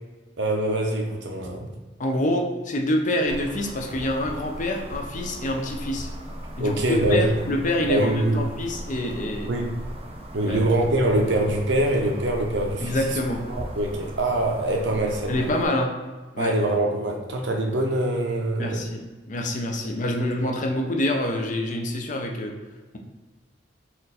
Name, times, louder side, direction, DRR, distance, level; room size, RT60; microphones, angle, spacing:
voice 1, 0.4-1.7 6.6-7.3 7.9-8.4 9.5-9.8 10.3-13.2 13.5-15.5 16.4-18.8, right 1 dB, 75° right, 2 dB, 0.7 m, -24 dB
voice 2, 2.0-6.1 6.6-9.5 10.5-10.6 12.8-13.4 15.3-15.9 16.3-16.5 18.6-19.0 19.3-22.5, left 1 dB, 45° left, 2 dB, 0.6 m, -26 dB
sound 1, 3.3-15.7, equal, 35° right, 0.5 m, -38 dB
4.3 x 2.5 x 4.0 m, 1.3 s
head